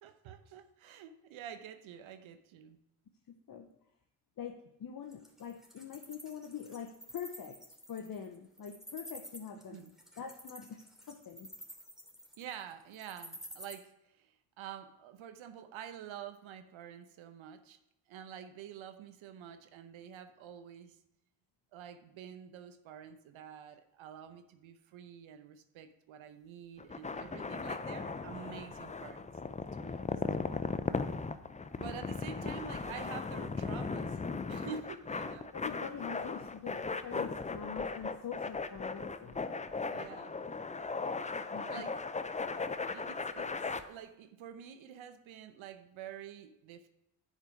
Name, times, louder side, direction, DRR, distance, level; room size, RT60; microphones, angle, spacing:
voice 1, 0.0-2.8 9.7-9.9 12.4-17.8 18.1-21.0 21.7-29.3 29.7-30.1 31.8-34.2 34.5-35.5 37.4-37.6 39.9-40.4 41.6-42.0 42.9-46.9, right 8 dB, 70° right, 9 dB, 0.9 m, -48 dB
voice 2, 3.3-3.7 4.4-7.6 7.9-9.8 10.2-10.8 11.1-11.5 30.0-30.3 35.5-39.8 41.5-41.8, left 7 dB, 45° left, 5 dB, 0.9 m, -44 dB
Wild animals, 5.1-13.7, equal, ahead, 2.7 m, -49 dB
sound 1, 26.8-43.8, left 4 dB, 15° left, 0.6 m, -37 dB
9.9 x 5.6 x 4.7 m, 0.82 s
supercardioid pair, 55°, 49 cm